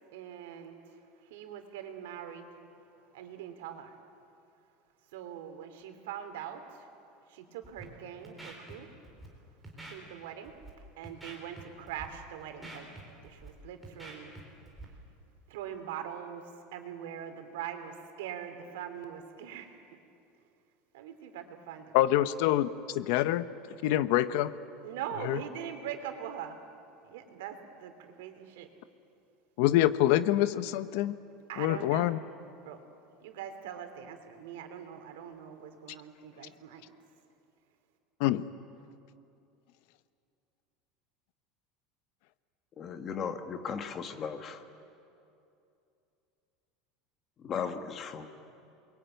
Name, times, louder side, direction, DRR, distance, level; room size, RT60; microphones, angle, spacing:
voice 1, 0.1-0.8 1.3-2.5 3.1-3.9 5.1-6.6 7.3-8.9 9.9-10.5 11.0-12.9 13.2-14.3 15.5-16.4 16.7-19.7 20.9-22.0 24.8-26.6 27.0-28.7 31.5-32.1 32.6-32.8 33.2-36.8, right 9 dB, 90° right, 7 dB, 3.2 m, -42 dB
Scratching (performance technique), 7.6-7.8 8.2-8.7 9.0-9.3 9.6-9.9 10.4-10.7 11.0-11.6 11.9-12.1 12.4-13.5 13.8-14.4 14.7-14.8, right 2 dB, 5° right, 4.0 m, -46 dB
voice 2, 21.9-22.7 22.9-23.4 23.8-24.5 25.2-25.4 29.6-31.1 31.6-32.2 38.2-38.4, left 14 dB, 60° left, 13 dB, 0.9 m, -25 dB
voice 3, 42.8-44.6 47.4-48.3, left 6 dB, 25° left, 7 dB, 1.4 m, -36 dB
28.5 x 22.0 x 9.2 m, 2.7 s
supercardioid pair, 170°, 0 cm